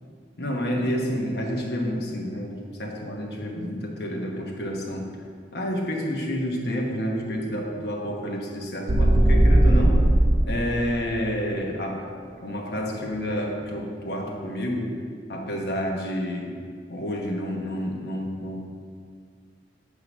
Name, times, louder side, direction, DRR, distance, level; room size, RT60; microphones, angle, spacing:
voice 1, 0.4-5.1 5.5-10.0 10.5-12.1 12.4-14.9 15.3-16.5 16.9-18.7, equal, 60° left, 0 dB, 1.0 m, -29 dB
sound 1, 8.9-10.6, right 1 dB, 35° right, 0.7 m, -17 dB
8.1 x 3.8 x 6.0 m, 2.1 s
head